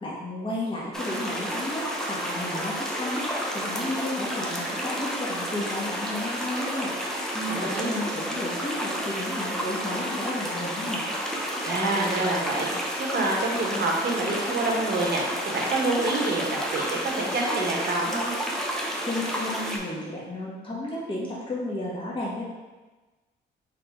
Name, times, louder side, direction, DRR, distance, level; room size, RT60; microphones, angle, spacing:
voice 1, 0.0-3.3 3.5-6.9 7.3-11.0 19.0-22.4, left 1 dB, 25° left, -6 dB, 1.4 m, -32 dB
sound 1, 0.9-19.8, equal, ahead, 0.7 m, -31 dB
voice 2, 7.4-7.9 11.6-18.3, right 2 dB, 55° right, -2 dB, 1.1 m, -27 dB
3.7 x 3.5 x 3.6 m, 1.2 s
cardioid pair, 90°, 20 cm